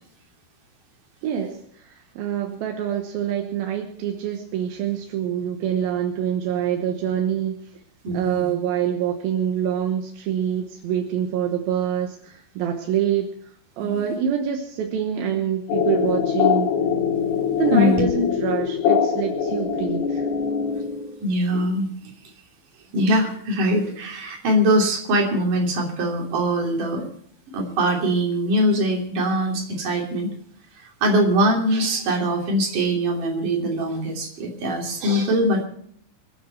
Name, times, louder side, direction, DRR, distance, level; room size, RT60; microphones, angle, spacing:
voice 1, 1.2-7.7 8.1-16.7 17.6-20.3, right 8 dB, 70° right, 3 dB, 2.5 m, -26 dB
voice 2, 8.0-8.5 13.8-14.0 17.7-18.0 20.6-20.8 21.2-21.9 22.9-27.1 27.5-30.3 31.0-35.6, equal, 50° right, 0 dB, 4.1 m, -22 dB
sound 1, 15.7-21.2, left 7 dB, 60° left, 3.6 m, -23 dB
25.5 x 9.7 x 4.4 m, 0.62 s
omnidirectional pair, 5.3 m